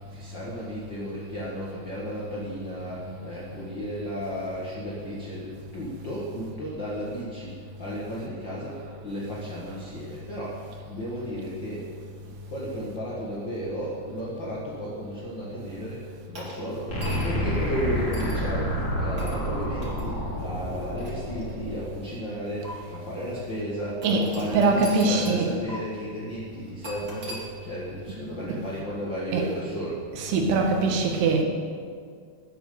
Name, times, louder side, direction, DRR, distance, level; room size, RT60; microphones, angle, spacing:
voice 1, 0.1-11.9 12.2-30.0, equal, 75° left, -6 dB, 1.0 m, -34 dB
sound 1, 16.3-17.5 18.1-18.4 19.2-19.4 19.8-20.0 20.7-21.9 22.6-22.7 24.0-25.4 25.7-25.8 26.8-27.4, right 1 dB, 30° right, 2.3 m, -41 dB
sound 2, 16.9-21.9, equal, 15° left, 3.4 m, -28 dB
voice 2, 24.5-25.5 29.3-29.4 30.2-31.4, right 3 dB, 65° right, 2 dB, 3.2 m, -22 dB
20.5 x 7.2 x 6.9 m, 2.1 s
omnidirectional pair, 5.6 m